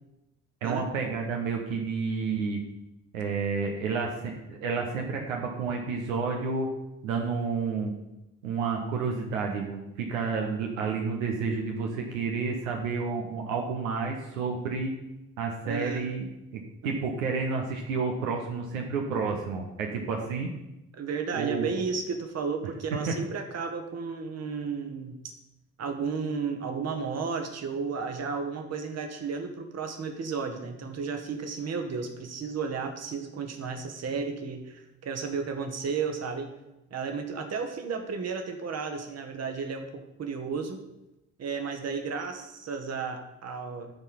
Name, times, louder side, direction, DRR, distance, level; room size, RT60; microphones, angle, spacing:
voice 1, 0.6-2.6 3.1-6.7 7.0-7.9 8.4-14.9 15.4-16.3 16.5-20.5 21.3-21.7 23.1-23.2, right 4 dB, 75° right, 1 dB, 1.0 m, -30 dB
voice 2, 15.6-16.1 16.8-16.9 20.9-25.2 25.8-36.5 36.9-40.9 41.4-44.0, right 5 dB, 40° right, 6 dB, 1.4 m, -33 dB
13.0 x 4.5 x 5.7 m, 0.95 s
figure-of-eight pair, 45°, 40 cm